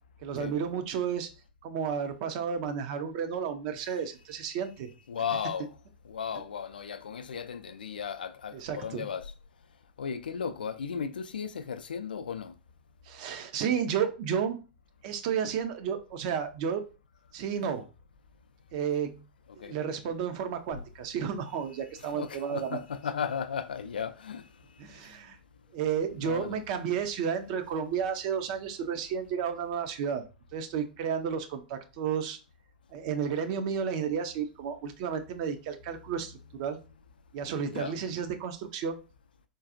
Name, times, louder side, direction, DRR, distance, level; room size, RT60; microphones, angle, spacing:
voice 1, 0.2-1.3 1.6-4.9 8.5-9.1 13.1-14.6 15.0-16.8 17.3-17.8 18.7-19.2 19.6-22.8 24.8-25.4 25.7-30.2 30.5-32.4 32.9-36.8 37.3-39.0, right 7 dB, 45° right, 0.5 m, -32 dB
voice 2, 5.1-5.7 6.1-9.3 10.0-12.5 19.6-19.7 22.0-24.5 26.1-26.6 37.7-38.0, left 7 dB, 70° left, 0.3 m, -35 dB
3.8 x 2.3 x 2.5 m
figure-of-eight pair, 95°, 5 cm